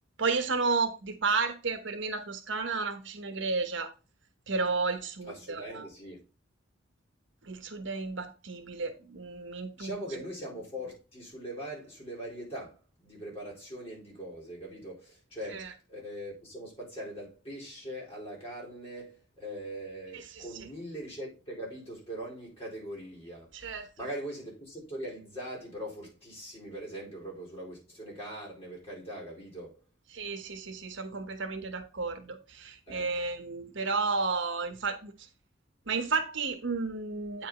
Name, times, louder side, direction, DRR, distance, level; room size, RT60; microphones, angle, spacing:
voice 1, 0.2-3.9 4.5-5.9 7.4-10.0 15.5-15.7 20.1-20.4 23.5-23.9 30.1-35.3 35.9-37.5, right 4 dB, 70° right, 1.1 m, -32 dB
voice 2, 5.2-6.2 9.8-23.5 24.0-29.8 32.9-33.1, right 1 dB, 30° left, 4.5 m, -41 dB
8.7 x 5.0 x 3.7 m
head